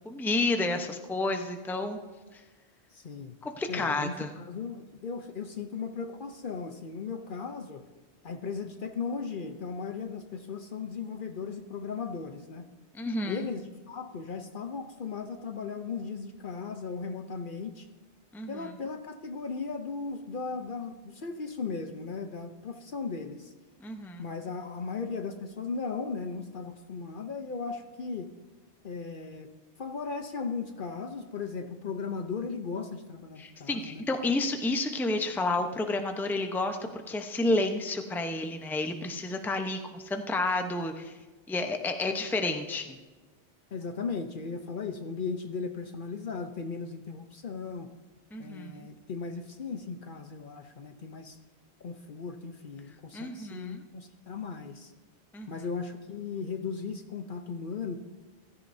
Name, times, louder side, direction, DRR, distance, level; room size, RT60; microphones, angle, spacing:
voice 1, 0.0-2.0 2.3-2.4 3.4-4.3 12.9-13.5 18.3-18.7 23.8-24.3 33.4-41.2 41.5-42.9 48.3-48.9 53.1-53.8 55.3-55.6, left 2 dB, ahead, 5 dB, 0.7 m, -30 dB
voice 2, 2.9-3.4 3.7-7.8 8.2-12.7 13.3-13.6 13.9-17.9 18.5-23.5 24.2-28.3 28.8-29.5 29.8-34.0 43.7-47.9 48.4-51.4 51.8-54.9 55.5-58.0, left 5 dB, 50° left, 7 dB, 0.8 m, -37 dB
16.0 x 13.5 x 2.7 m, 1.3 s
omnidirectional pair, 1.2 m